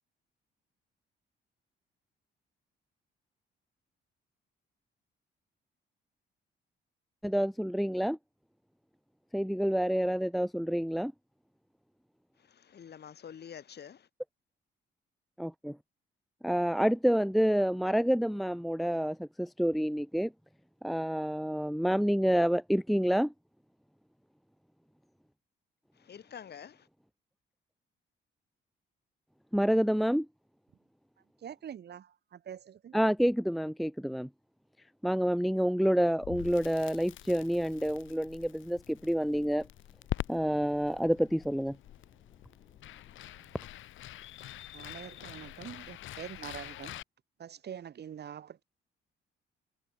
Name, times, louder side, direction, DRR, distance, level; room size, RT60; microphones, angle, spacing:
voice 1, 7.2-8.2 9.3-11.1 15.4-15.7 16.4-20.3 20.8-23.3 29.5-30.3 32.9-34.3 35.0-39.7 40.3-41.8, equal, ahead, 0.6 m, -28 dB
voice 2, 12.4-14.1 25.9-26.9, left 8 dB, 55° left, 7.2 m, -48 dB
voice 3, 31.4-32.9 43.3-43.5 44.7-47.0 47.4-48.6, right 9 dB, 55° right, 2.3 m, -45 dB
Crackle, 36.2-47.0, left 13 dB, 80° left, 1.8 m, -44 dB
cardioid pair, 90°, 20 cm